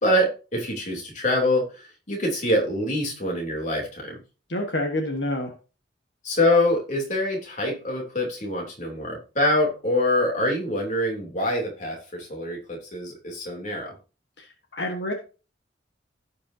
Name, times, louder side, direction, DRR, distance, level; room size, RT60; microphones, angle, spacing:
voice 1, 0.0-4.2 6.2-13.9, left 1 dB, 45° left, 0 dB, 3.1 m, -25 dB
voice 2, 4.5-5.5 14.4-14.5 14.7-15.1, left 1 dB, 70° left, 2 dB, 1.5 m, -27 dB
16.0 x 5.4 x 2.8 m, 0.32 s
head